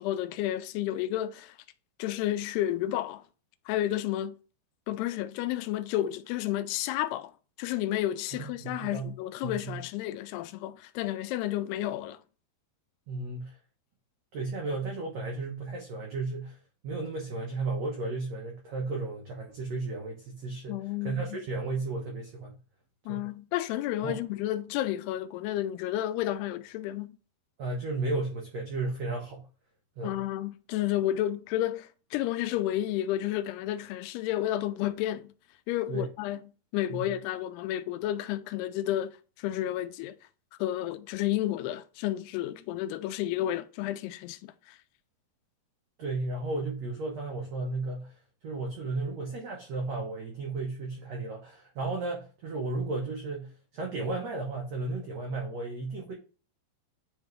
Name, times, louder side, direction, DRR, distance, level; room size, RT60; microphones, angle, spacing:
voice 1, 0.0-1.6 2.0-3.2 3.7-4.3 4.9-7.3 7.6-12.2 20.7-21.2 23.1-27.2 30.0-35.3 35.7-36.4 36.7-39.1 39.4-40.2 40.6-44.8, left 13 dB, 85° left, 2.6 m, -31 dB
voice 2, 8.3-9.1 9.4-9.8 13.1-13.6 14.3-16.6 16.8-22.6 23.0-23.3 24.0-24.2 27.6-29.5 30.0-30.2 35.9-36.1 36.9-37.1 46.0-56.1, right 3 dB, 80° right, 1.5 m, -34 dB
9.8 x 3.5 x 3.1 m
omnidirectional pair, 4.6 m